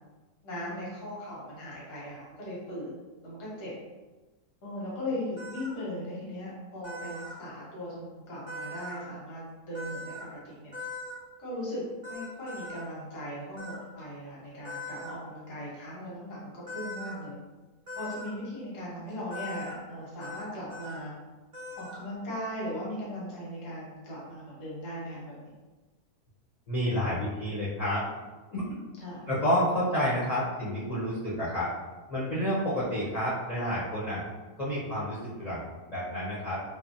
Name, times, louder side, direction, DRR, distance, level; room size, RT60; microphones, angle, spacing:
voice 1, 0.4-2.9 3.2-3.7 4.6-10.7 11.4-11.8 12.1-17.4 18.0-21.1 21.8-25.3 29.0-29.2, left 1 dB, 85° left, -7 dB, 1.6 m, -38 dB
sound 1, 5.4-5.7 6.8-7.4 8.5-9.0 9.7-10.3 10.7-11.2 12.0-12.8 13.6-13.8 14.6-15.1 16.7-17.2 17.9-18.3 19.3-19.8 20.2-20.4 20.7-21.0 21.5-22.0, left 1 dB, 40° right, 0.8 m, -40 dB
voice 2, 26.7-28.0 28.5-28.7 29.3-31.7 32.1-34.2 34.6-36.6, equal, 40° left, -10 dB, 0.5 m, -29 dB
3.4 x 2.1 x 2.5 m, 1.2 s
omnidirectional pair, 1.7 m